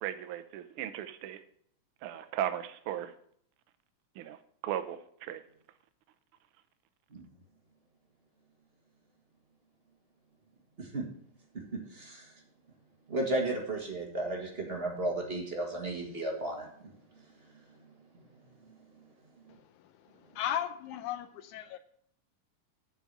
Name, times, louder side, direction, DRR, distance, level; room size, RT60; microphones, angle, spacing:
voice 1, 0.0-1.4 2.0-3.1 4.2-5.4, right 11 dB, 90° right, 10 dB, 1.2 m, -37 dB
voice 2, 11.7-12.3 13.1-16.9, right 2 dB, 25° right, 0 dB, 1.4 m, -34 dB
voice 3, 19.6-21.8, left 10 dB, 85° left, 10 dB, 2.2 m, -37 dB
7.3 x 6.8 x 7.5 m, 0.64 s
omnidirectional pair, 3.4 m